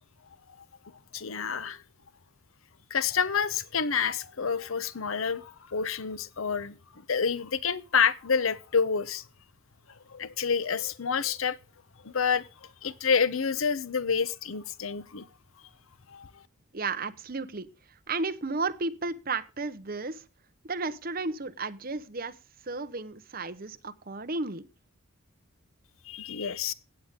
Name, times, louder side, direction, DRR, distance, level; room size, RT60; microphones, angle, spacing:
voice 1, 1.1-1.8 2.9-6.7 7.1-9.2 10.1-11.6 12.0-12.5 12.8-15.3 16.1-16.4 26.1-26.7, left 6 dB, 70° left, 0.8 m, -28 dB
voice 2, 16.7-20.2 20.6-22.4 22.6-24.7, right 3 dB, 45° right, 1.0 m, -33 dB
15.5 x 9.2 x 3.7 m
head